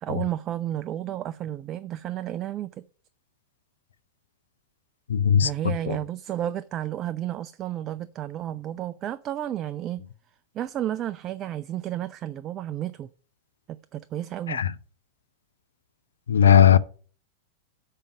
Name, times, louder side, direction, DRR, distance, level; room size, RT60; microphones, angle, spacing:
voice 1, 0.0-2.7 5.4-10.0 10.5-13.1 13.7-14.6, right 12 dB, 30° right, 0.3 m, -32 dB
voice 2, 5.1-5.5 5.9-6.0 14.5-14.7 16.3-16.8, left 9 dB, 70° left, 0.4 m, -17 dB
6.6 x 5.1 x 5.9 m
figure-of-eight pair, 90°, 0 cm